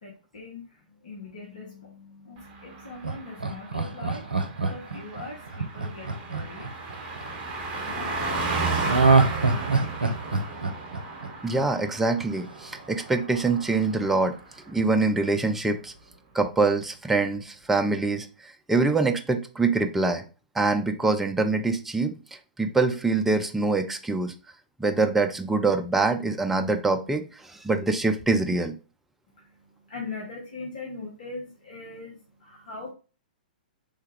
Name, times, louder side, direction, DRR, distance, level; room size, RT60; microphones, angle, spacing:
voice 1, 0.0-10.7 29.3-32.9, left 3 dB, 60° left, -2 dB, 0.9 m, -42 dB
Car passing by, 2.5-14.4 14.7-14.9, right 3 dB, 25° right, 0.7 m, -34 dB
Laughter, 3.0-7.3 8.8-11.9 12.2-12.3, right 3 dB, 80° right, 0.5 m, -24 dB
voice 2, 11.4-14.3 14.7-15.9 16.3-20.2 20.6-22.2 22.6-24.3 24.8-27.2 27.5-28.7, right 3 dB, 5° right, 5 dB, 0.3 m, -24 dB
3.4 x 2.2 x 3.2 m, 0.33 s
figure-of-eight pair, 115°, 5 cm